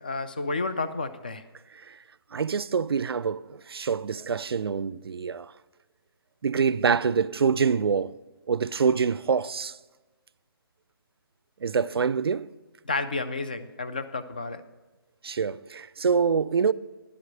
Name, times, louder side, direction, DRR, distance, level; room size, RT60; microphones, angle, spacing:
voice 1, 0.0-1.4 12.8-14.6, left 3 dB, 20° left, 0.3 m, -31 dB
voice 2, 2.3-5.5 6.4-8.1 8.5-9.7 11.6-12.5 15.2-16.7, right 6 dB, 85° right, 0.4 m, -25 dB
11.5 x 4.9 x 7.8 m
hypercardioid pair, 175°, 12 cm